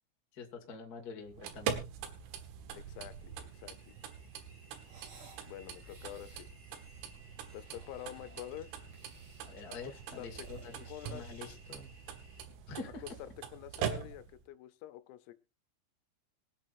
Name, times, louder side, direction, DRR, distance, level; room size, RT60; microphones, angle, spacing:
voice 1, 0.3-1.8 9.4-11.9 12.7-13.0, left 4 dB, 60° left, 3 dB, 0.9 m, -46 dB
sound 1, 1.3-14.4, right 8 dB, 75° right, 4.0 m, -43 dB
sound 2, 2.2-12.4, equal, 15° right, 3.0 m, -60 dB
voice 2, 2.7-4.0 5.5-6.5 7.5-8.9 9.7-10.5 10.9-11.3 13.2-15.3, left 13 dB, 85° left, 12 dB, 3.6 m, -47 dB
sound 3, 4.8-5.5 5.8-6.5 7.3-8.5 8.9-9.6 10.0-11.5, right 4 dB, 40° right, 3.0 m, -59 dB
23.0 x 8.9 x 2.7 m, 0.27 s
omnidirectional pair, 6.0 m